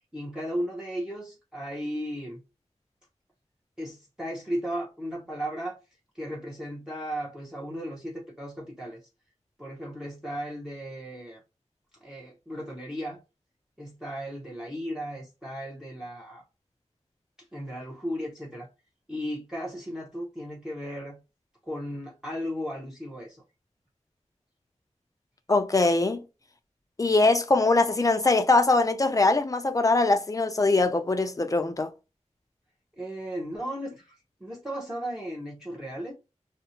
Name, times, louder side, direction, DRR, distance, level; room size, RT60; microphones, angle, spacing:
voice 1, 0.1-2.4 3.8-5.8 6.1-9.0 9.6-11.4 12.0-13.2 13.8-16.4 17.5-18.7 19.1-21.2 21.6-23.4 33.0-36.1, equal, 5° right, 0.7 m, -35 dB
voice 2, 25.5-26.2 27.0-31.9, left 3 dB, 30° left, 0.4 m, -22 dB
2.6 x 2.0 x 2.8 m
wide cardioid pair, 85°, 12 cm